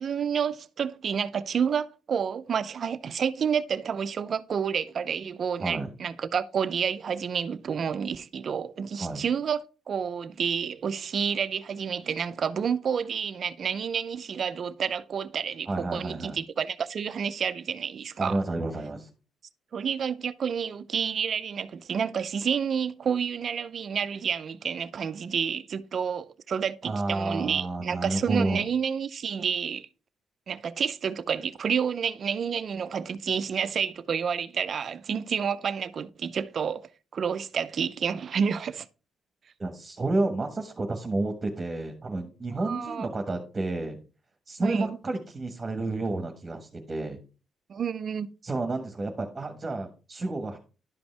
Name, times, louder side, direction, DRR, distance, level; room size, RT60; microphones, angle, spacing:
voice 1, 0.0-18.4 19.7-29.9 30.5-36.8 37.1-38.9 42.5-43.1 44.6-45.0 47.7-48.3, right 7 dB, 50° right, 0.5 m, -29 dB
voice 2, 5.6-5.9 9.0-9.2 15.7-16.4 18.2-19.1 26.8-28.7 39.6-44.0 44.5-47.2 48.4-50.6, right 2 dB, 25° right, 1.3 m, -30 dB
11.0 x 5.2 x 3.3 m
cardioid pair, 90°, 0 cm